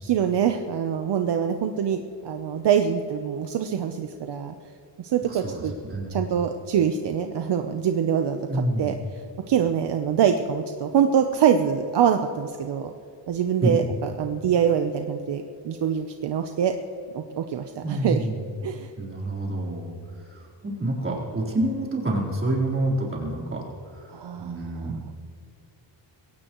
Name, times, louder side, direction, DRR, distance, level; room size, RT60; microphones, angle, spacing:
voice 1, 0.0-4.5 5.0-5.7 6.1-8.9 9.5-12.9 13.3-16.7 17.1-18.2 18.6-18.9 24.1-24.9, right 8 dB, 65° right, 6 dB, 0.8 m, -24 dB
voice 2, 5.2-6.3 8.5-9.0 13.6-13.9 17.8-18.4 19.0-23.6 23.9-24.1 24.4-25.1, right 1 dB, 25° right, -4 dB, 4.0 m, -28 dB
22.0 x 17.0 x 3.1 m, 2.7 s
wide cardioid pair, 160°, 45 cm